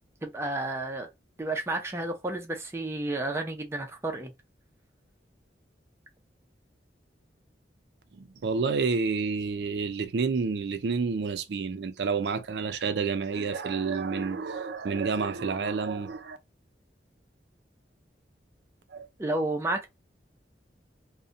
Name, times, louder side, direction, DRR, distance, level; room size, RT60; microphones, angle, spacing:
voice 1, 0.2-1.1 1.4-4.3 19.2-19.9, right 2 dB, 15° right, 0.4 m, -31 dB
voice 2, 8.1-16.4 18.9-19.1, right 5 dB, 75° right, 0.4 m, -29 dB
2.7 x 2.1 x 2.4 m
head